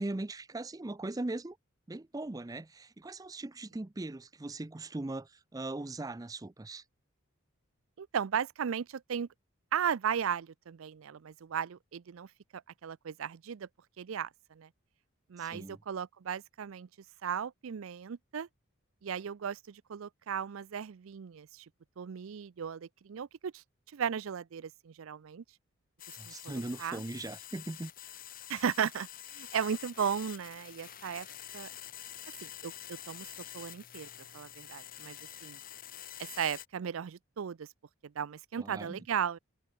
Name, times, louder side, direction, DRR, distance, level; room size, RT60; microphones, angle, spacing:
voice 1, 0.0-1.6 1.9-6.8 15.4-15.8 26.2-27.9 38.6-39.0, right 2 dB, 15° right, 0.4 m, -39 dB
voice 2, 8.0-9.3 9.7-13.7 14.0-14.7 15.3-16.9 17.2-18.5 19.0-21.7 22.0-23.6 23.9-25.4 26.1-27.0 28.5-31.3 31.5-31.7 32.4-33.3 33.5-35.2 35.4-35.6 36.2-37.7 38.0-39.4, right 7 dB, 75° right, 0.4 m, -36 dB
sound 1, 26.0-36.7, left 11 dB, 40° left, 1.5 m, -47 dB
head